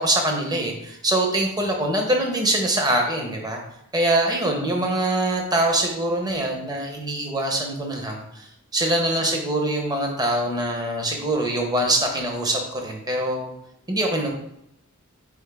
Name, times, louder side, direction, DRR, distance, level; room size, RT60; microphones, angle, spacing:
voice 1, 0.0-3.6 3.9-13.5 13.9-14.3, right 1 dB, 20° right, 2 dB, 0.8 m, -24 dB
4.4 x 3.4 x 3.4 m, 0.79 s
head